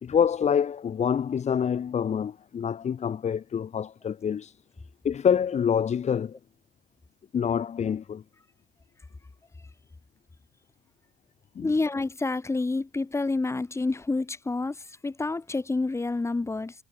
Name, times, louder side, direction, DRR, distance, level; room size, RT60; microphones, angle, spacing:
voice 1, 0.0-4.5 5.0-6.3 7.3-8.2 11.5-11.7, left 7 dB, 40° left, 3.1 m, -26 dB
voice 2, 11.6-16.7, left 3 dB, 15° left, 3.6 m, -28 dB
cardioid pair, 110°, 17 cm